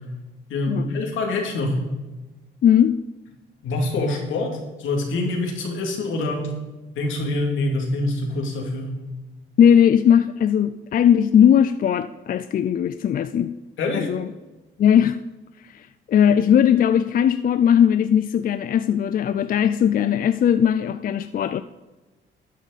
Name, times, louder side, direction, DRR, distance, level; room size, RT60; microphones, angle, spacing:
voice 1, 0.5-1.8 3.6-6.5 7.0-9.0 13.8-14.1, left 2 dB, 80° left, 2.7 m, -25 dB
voice 2, 2.6-3.0 9.6-13.6 13.9-14.3 14.8-15.2 15.6-21.6, left 9 dB, 45° left, 0.4 m, -18 dB
13.0 x 9.1 x 4.1 m
cardioid pair, 90°, 20 cm